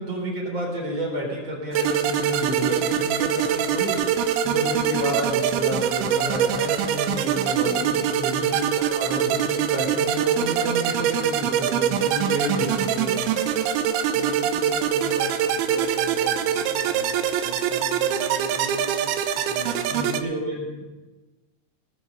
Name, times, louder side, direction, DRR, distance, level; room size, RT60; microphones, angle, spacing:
voice 1, 0.0-13.3 19.9-20.8, equal, 30° right, -2 dB, 4.2 m, -30 dB
sound 1, 1.7-20.2, right 9 dB, 75° right, 2.5 m, -24 dB
voice 2, 14.1-19.9, left 1 dB, 25° left, -4 dB, 0.7 m, -39 dB
20.0 x 7.2 x 6.6 m, 1.2 s
omnidirectional pair, 4.9 m